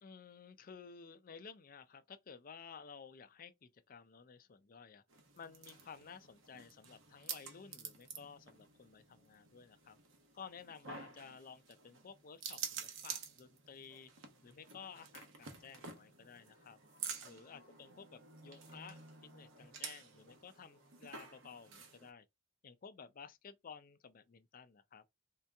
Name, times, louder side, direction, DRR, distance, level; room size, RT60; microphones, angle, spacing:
voice 1, 0.0-5.0 5.4-10.0 10.3-14.1 14.4-16.8 17.2-22.3 22.6-25.0, left 6 dB, 40° left, 0.4 m, -54 dB
sound 1, 5.1-22.1, right 6 dB, 65° right, 0.9 m, -50 dB
3.6 x 2.8 x 3.4 m
head